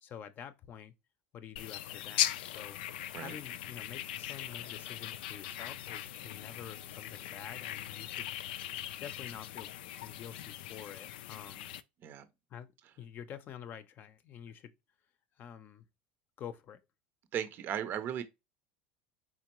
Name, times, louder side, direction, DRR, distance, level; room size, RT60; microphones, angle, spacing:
voice 1, 0.0-0.9 1.3-2.8 3.2-8.3 9.0-9.7 10.0-11.7 12.5-12.7 13.0-14.7 15.4-15.8 16.4-16.8, left 9 dB, 40° left, 0.6 m, -48 dB
sound 1, 1.6-11.8, left 12 dB, 85° left, 0.4 m, -39 dB
voice 2, 17.3-18.2, right 9 dB, 40° right, 0.6 m, -36 dB
4.3 x 3.7 x 3.0 m
supercardioid pair, 120°, 5 cm